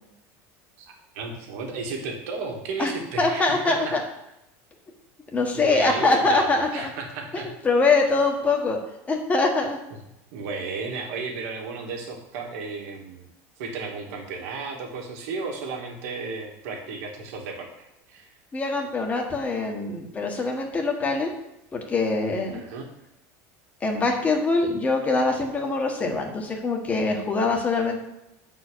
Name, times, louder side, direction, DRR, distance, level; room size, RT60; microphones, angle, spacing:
voice 1, 1.1-3.9 5.5-7.5 10.3-13.3 13.6-17.7 18.1-18.3 22.5-22.9, right 4 dB, 75° right, 1 dB, 2.0 m, -34 dB
voice 2, 3.2-4.0 5.3-6.9 7.3-8.8 9.1-9.8 18.5-21.3 21.7-22.6 23.8-28.0, left 3 dB, 20° left, 2 dB, 1.5 m, -23 dB
8.3 x 4.7 x 6.3 m, 0.88 s
supercardioid pair, 140°, 8 cm